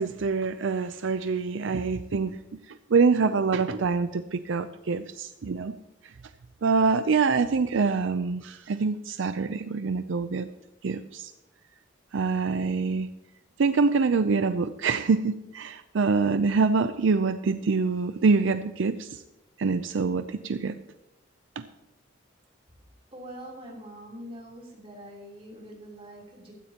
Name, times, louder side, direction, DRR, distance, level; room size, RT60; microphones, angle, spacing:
voice 1, 0.0-5.8 6.6-10.5 10.8-11.3 12.1-13.1 13.6-19.2 19.6-20.7 21.6-21.7, right 4 dB, 70° right, 10 dB, 0.5 m, -25 dB
voice 2, 23.1-26.5, equal, 30° right, -3 dB, 3.4 m, -44 dB
15.5 x 13.5 x 2.9 m, 0.93 s
head